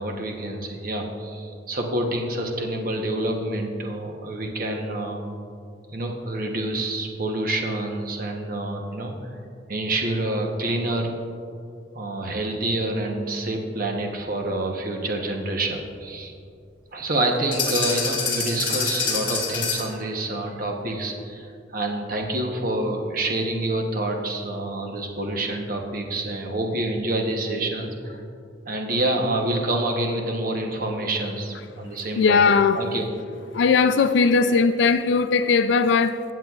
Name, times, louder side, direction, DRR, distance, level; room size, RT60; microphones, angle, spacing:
voice 1, 0.0-5.2 5.9-9.3 9.7-11.1 11.9-16.3 16.9-28.2 28.7-32.4 32.7-33.1, right 1 dB, 50° right, 0.9 m, -27 dB
sound 1, 17.5-20.0, left 4 dB, 25° left, 1.9 m, -26 dB
voice 2, 32.2-32.8 33.5-36.2, left 5 dB, 70° left, 0.4 m, -19 dB
15.0 x 7.7 x 2.4 m
head